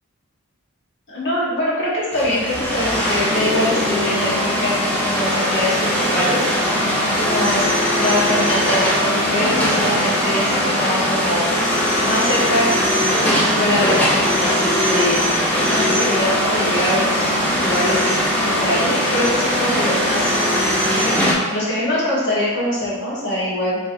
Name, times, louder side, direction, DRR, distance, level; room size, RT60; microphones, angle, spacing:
voice 1, 1.1-4.7 5.0-6.4 7.1-7.6 8.0-11.5 12.0-12.7 13.3-15.2 15.6-17.3 17.6-18.0 18.4-20.3 21.0-21.1 21.5-23.8, left 1 dB, 55° left, -8 dB, 1.3 m, -23 dB
sound 1, 2.1-21.3, equal, 5° left, 0.6 m, -19 dB
3.6 x 3.2 x 2.6 m, 1.4 s
head